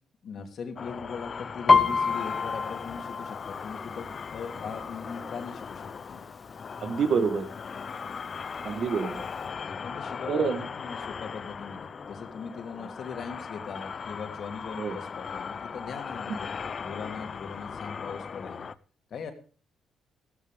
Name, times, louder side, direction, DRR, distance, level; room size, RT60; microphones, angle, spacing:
voice 1, 0.2-6.2 9.6-18.7 19.1-19.3, left 6 dB, 60° left, 5 dB, 2.9 m, -40 dB
sound 1, 0.8-18.7, left 6 dB, 45° left, 0.6 m, -38 dB
Piano, 1.7-5.3 5.7-6.1 6.4-7.1 7.7-7.8 8.0-9.0 9.4-9.5, left 4 dB, 30° left, 1.4 m, -26 dB
voice 2, 6.8-7.5 8.6-9.2 10.3-10.6 14.8-15.0, right 5 dB, 60° right, 10 dB, 1.6 m, -27 dB
15.0 x 13.5 x 3.6 m, 0.38 s
cardioid pair, 90°, 0 cm